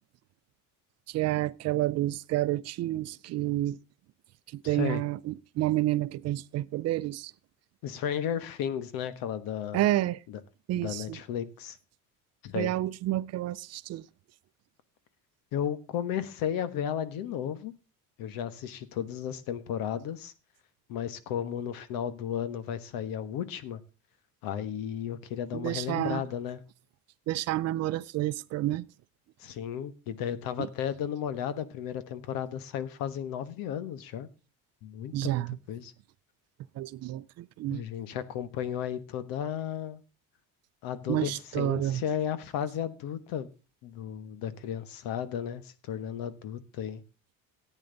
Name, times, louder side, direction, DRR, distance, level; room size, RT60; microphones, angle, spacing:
voice 1, 1.1-3.8 4.5-7.3 9.7-10.2 10.7-11.2 12.5-14.0 25.5-26.2 27.3-28.9 30.6-30.7 35.1-35.6 36.7-37.8 41.1-42.0, right 15 dB, 50° right, 0.5 m, -29 dB
voice 2, 4.6-5.0 7.8-9.8 10.3-10.4 10.7-11.8 12.4-12.7 15.5-17.7 18.2-20.3 20.9-23.8 24.4-26.6 29.4-34.3 34.8-35.9 37.7-40.0 40.8-43.5 43.8-47.0, left 9 dB, 85° left, 1.4 m, -34 dB
14.0 x 9.1 x 3.9 m
cardioid pair, 170°, 34 cm